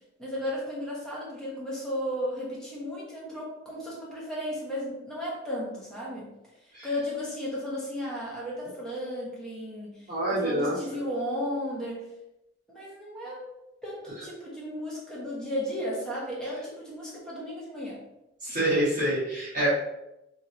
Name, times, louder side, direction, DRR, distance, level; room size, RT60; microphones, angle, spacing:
voice 1, 0.2-6.3 6.8-12.1 12.7-13.4 13.8-18.0, equal, 5° left, -6 dB, 0.9 m, -34 dB
voice 2, 10.1-10.7 18.4-19.7, right 1 dB, 45° right, -11 dB, 1.4 m, -26 dB
3.1 x 2.6 x 2.6 m, 0.89 s
head